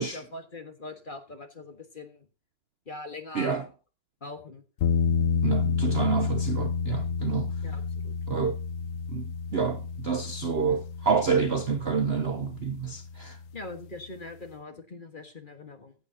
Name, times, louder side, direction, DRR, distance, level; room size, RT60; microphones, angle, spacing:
voice 1, 0.0-2.3 2.9-3.6 4.2-4.6 7.6-8.1 13.5-15.9, left 2 dB, 30° left, 1.5 m, -42 dB
sound 1, 4.8-13.7, left 6 dB, 65° left, 0.9 m, -30 dB
voice 2, 5.4-7.5 8.3-8.6 9.1-13.4, right 5 dB, 50° right, 0.8 m, -28 dB
14.5 x 9.3 x 2.8 m
omnidirectional pair, 1.8 m